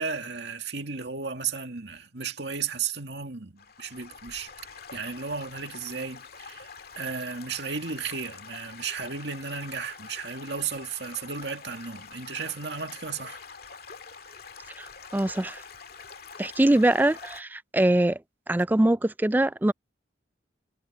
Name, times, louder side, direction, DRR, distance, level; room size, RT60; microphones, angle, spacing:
voice 1, 0.0-4.5 4.9-13.4, right 5 dB, 70° right, 2.2 m, -34 dB
Stream / Gurgling / Trickle dribble, 3.6-17.4, left 5 dB, 55° left, 2.2 m, -45 dB
voice 2, 15.1-15.6 16.4-18.2 18.5-19.7, right 1 dB, 10° right, 0.3 m, -23 dB
head